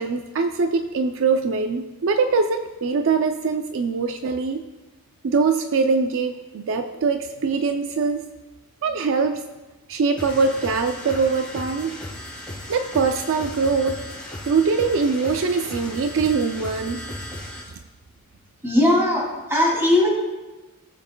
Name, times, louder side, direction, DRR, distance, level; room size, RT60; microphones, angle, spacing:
voice 1, 0.0-4.6 5.2-8.3 8.8-9.4 9.9-12.0 12.7-14.0 14.5-17.0, right 4 dB, 60° right, 7 dB, 0.4 m, -22 dB
sound 1, 10.2-17.7, left 1 dB, 5° left, 2.4 m, -36 dB
voice 2, 18.6-20.1, left 1 dB, 10° right, -3 dB, 2.6 m, -19 dB
17.5 x 7.2 x 2.2 m, 1.2 s
head